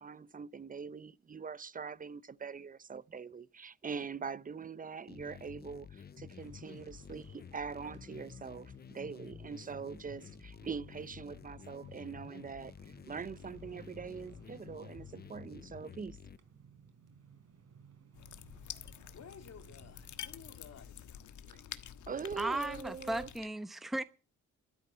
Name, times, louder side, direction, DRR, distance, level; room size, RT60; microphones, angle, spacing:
voice 1, 0.0-16.2 21.5-21.6 22.1-23.3, right 6 dB, 30° right, 0.7 m, -43 dB
sound 1, 5.1-16.4, left 7 dB, 35° left, 0.6 m, -51 dB
sound 2, 6.4-20.9, right 5 dB, 55° right, 4.7 m, -61 dB
sound 3, 18.2-23.5, left 10 dB, 80° left, 1.4 m, -48 dB
voice 2, 19.1-21.8, left 7 dB, 60° left, 2.4 m, -55 dB
voice 3, 22.4-24.0, right 2 dB, ahead, 0.9 m, -36 dB
13.0 x 9.9 x 8.1 m
cardioid pair, 85°, 30 cm